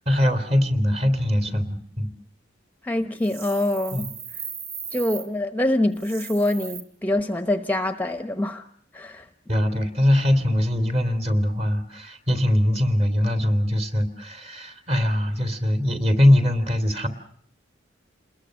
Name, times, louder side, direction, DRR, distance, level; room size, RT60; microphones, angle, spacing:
voice 1, 0.1-2.1 3.9-4.1 9.5-17.1, left 1 dB, 35° right, 8 dB, 3.1 m, -22 dB
voice 2, 2.8-4.1 4.9-8.7 8.9-9.3, left 1 dB, 10° left, 8 dB, 1.0 m, -25 dB
sound 1, 3.2-5.3 5.9-6.8, right 6 dB, 50° right, 2.8 m, -37 dB
28.5 x 21.0 x 6.5 m, 0.62 s
head